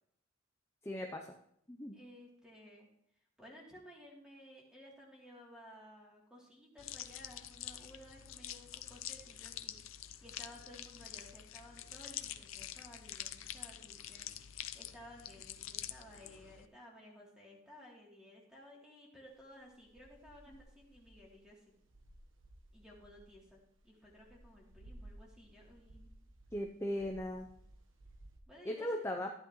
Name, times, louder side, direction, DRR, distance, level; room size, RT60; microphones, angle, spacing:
voice 1, 0.8-1.3 1.7-2.0 26.5-27.5 28.6-29.3, left 1 dB, 15° left, 2 dB, 0.7 m, -38 dB
voice 2, 1.9-2.9 3.4-14.3 14.7-21.6 22.7-23.6 23.8-26.1 28.5-29.1, equal, 5° right, -4 dB, 3.1 m, -56 dB
sound 1, 6.8-16.7, left 11 dB, 90° left, 0.6 m, -46 dB
sound 2, 19.3-28.4, right 1 dB, 75° right, 1.2 m, -58 dB
14.0 x 10.5 x 3.1 m, 0.71 s
head